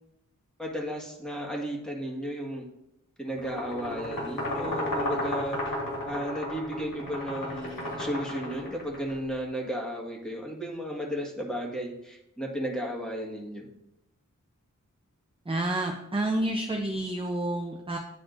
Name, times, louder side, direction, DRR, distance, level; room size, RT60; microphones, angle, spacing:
voice 1, 0.6-2.7 3.2-5.7 6.0-13.7, equal, ahead, -2 dB, 1.8 m, -34 dB
sound 1, 3.4-9.1, left 1 dB, 90° left, 2.0 m, -33 dB
voice 2, 15.5-18.0, right 1 dB, 15° right, 2 dB, 0.7 m, -29 dB
10.5 x 4.1 x 2.6 m, 0.84 s
wide cardioid pair, 40°, 32 cm